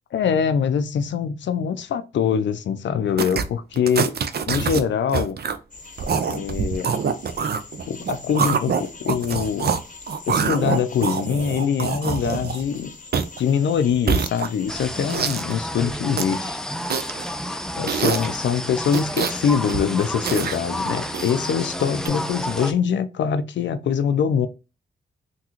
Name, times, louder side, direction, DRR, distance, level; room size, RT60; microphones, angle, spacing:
voice 1, 0.1-4.1 4.5-5.4 6.2-7.0 7.9-9.7 10.3-12.9 13.4-16.6 17.8-24.5, left 7 dB, 70° left, 0.4 m, -23 dB
sound 1, 3.2-3.5 3.7-4.8 5.1-5.6 6.0-9.8 10.1-12.7 13.1-13.4 13.9-14.7 15.1-15.5 15.9-16.3 16.9-17.3 17.9-18.4 18.9-19.4 19.7-20.6 21.1-21.5 22.1-22.2, right 6 dB, 55° right, 0.5 m, -25 dB
sound 2, 5.7-15.2, left 3 dB, 40° left, 0.8 m, -43 dB
sound 3, 14.7-22.7, equal, 5° left, 0.5 m, -30 dB
3.6 x 2.3 x 2.9 m
supercardioid pair, 45°, 20 cm